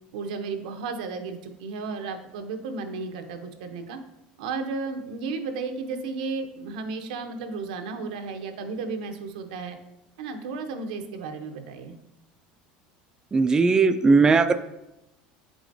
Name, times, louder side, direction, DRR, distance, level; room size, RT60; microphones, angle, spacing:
voice 1, 0.1-4.0 4.4-9.8 10.2-11.9, right 4 dB, 90° right, 6 dB, 0.7 m, -33 dB
voice 2, 13.3-14.6, right 4 dB, 15° right, 9 dB, 0.3 m, -18 dB
7.4 x 4.9 x 2.6 m, 0.91 s
supercardioid pair, 120°, 4 cm